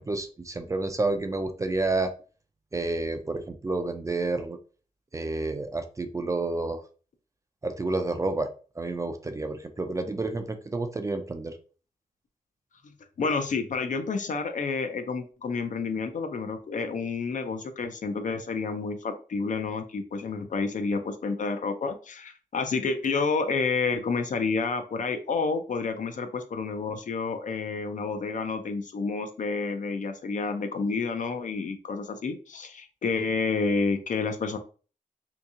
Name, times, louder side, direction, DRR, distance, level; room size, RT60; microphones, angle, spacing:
voice 1, 0.0-2.1 2.7-4.6 5.1-6.8 7.6-8.5 8.8-11.5, right 2 dB, 20° right, 6 dB, 0.3 m, -29 dB
voice 2, 13.2-34.6, left 4 dB, 60° left, 6 dB, 0.5 m, -29 dB
2.8 x 2.7 x 3.6 m, 0.38 s
wide cardioid pair, 165°, 14 cm